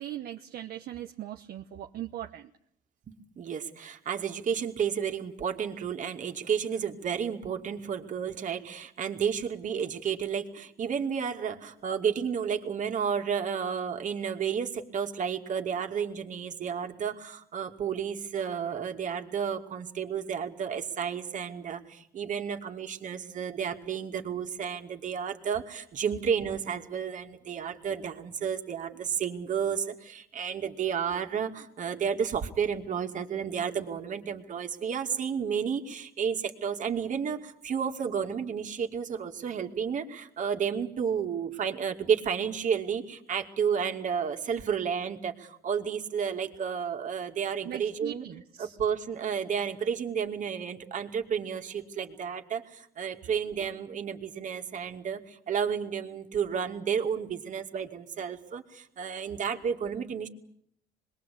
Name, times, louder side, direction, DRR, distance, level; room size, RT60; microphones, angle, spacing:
voice 1, 0.0-2.5 47.6-48.7, right 12 dB, 65° right, 5 dB, 1.1 m, -39 dB
voice 2, 3.1-48.2 48.6-60.3, right 7 dB, 50° right, 5 dB, 2.6 m, -32 dB
26.5 x 21.5 x 8.6 m, 0.69 s
cardioid pair, 110°, 17 cm